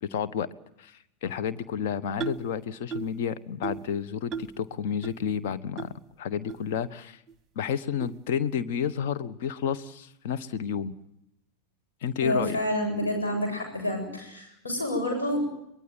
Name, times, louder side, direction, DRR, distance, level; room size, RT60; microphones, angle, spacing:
voice 1, 0.0-0.5 0.8-5.9 6.2-7.2 7.5-10.9 12.0-12.6, left 8 dB, 50° left, 13 dB, 1.3 m, -30 dB
sound 1, 2.2-2.5 2.9-3.2 3.6-3.9 4.3-4.6 5.0-5.1 5.8-5.9 6.5-6.6 7.3-7.4 8.0-8.2, right 6 dB, 25° right, 1.0 m, -35 dB
voice 2, 12.2-15.4, left 1 dB, 70° left, 3 dB, 7.7 m, -28 dB
24.0 x 21.0 x 9.3 m, 0.81 s
figure-of-eight pair, 90°, 0 cm